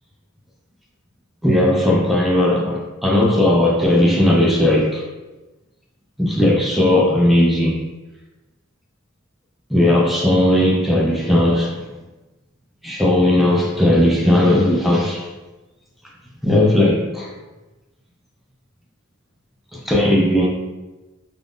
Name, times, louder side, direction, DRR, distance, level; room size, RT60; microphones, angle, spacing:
voice 1, 1.4-5.0 6.2-7.8 9.7-11.9 12.8-15.3 16.4-17.3 19.7-20.5, left 1 dB, ahead, -2 dB, 0.4 m, -16 dB
2.4 x 2.0 x 3.4 m, 1.1 s
head